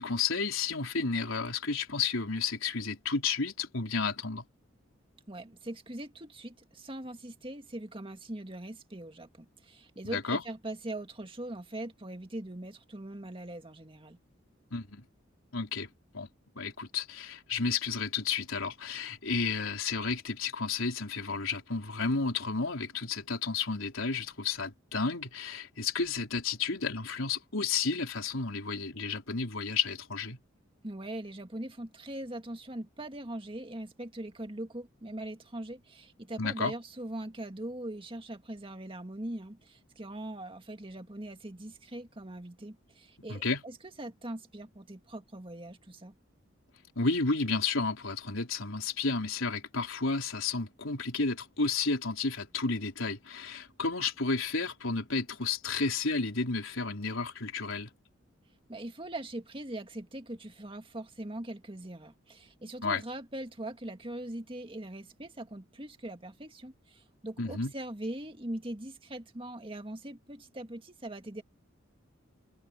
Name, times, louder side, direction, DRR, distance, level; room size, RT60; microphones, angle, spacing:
voice 1, 0.0-4.4 10.0-10.4 14.7-15.0 15.5-16.3 16.6-30.4 36.4-36.7 43.3-43.6 47.0-57.9 62.8-63.0 67.4-67.7, left 4 dB, 85° left, 3.9 m, -32 dB
voice 2, 5.3-14.2 30.8-46.2 58.7-71.4, right 1 dB, 25° right, 2.1 m, -41 dB
head